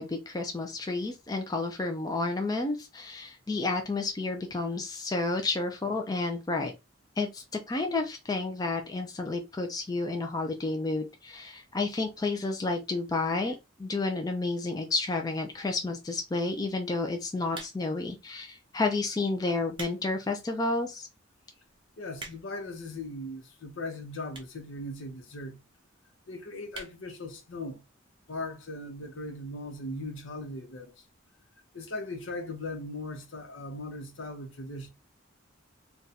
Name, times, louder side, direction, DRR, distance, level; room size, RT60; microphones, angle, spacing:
voice 1, 0.0-6.7 7.2-21.1, left 3 dB, 20° left, 0.4 m, -31 dB
sound 1, 17.5-18.1 18.8-19.0 19.5-20.0 20.5-20.6 21.2-21.3 21.5-21.6 21.8-22.7 23.4-23.5 24.3-24.6 24.9-25.0 25.2-25.3 25.6-25.7 26.0-26.2 26.7-27.0 27.4-27.5 27.7-27.8, right 3 dB, 25° right, 0.7 m, -43 dB
voice 2, 22.0-25.6 26.3-27.8 28.3-31.0 31.7-34.9, left 2 dB, 70° left, 0.7 m, -39 dB
2.6 x 2.3 x 4.0 m
head